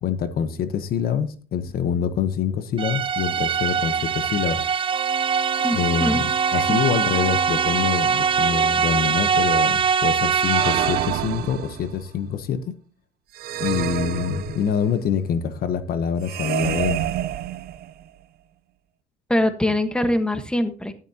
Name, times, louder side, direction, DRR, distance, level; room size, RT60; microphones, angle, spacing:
voice 1, 0.0-4.6 5.7-12.7 13.6-17.0, left 7 dB, 60° left, 11 dB, 1.0 m, -25 dB
sound 1, 2.8-11.2, right 7 dB, 30° right, 0.6 m, -22 dB
Wind instrument woodwind instrument, 4.9-9.5, right 8 dB, 50° right, 1.8 m, -34 dB
voice 2, 5.6-6.8 19.3-20.9, left 1 dB, 5° left, 8 dB, 1.3 m, -24 dB
sound 2, 10.4-12.1 13.3-15.0 16.2-18.1, right 11 dB, 65° right, 0.7 m, -28 dB
12.5 x 11.0 x 2.9 m, 0.40 s
cardioid pair, 110°, 17 cm